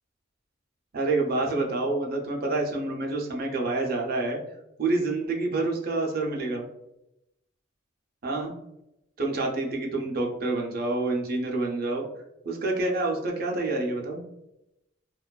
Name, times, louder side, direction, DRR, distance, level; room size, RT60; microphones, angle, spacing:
voice 1, 0.9-4.4 4.8-6.7 8.2-8.5 9.2-12.0 12.4-14.2, right 2 dB, 45° right, 0 dB, 0.5 m, -27 dB
2.5 x 2.2 x 2.2 m, 0.86 s
head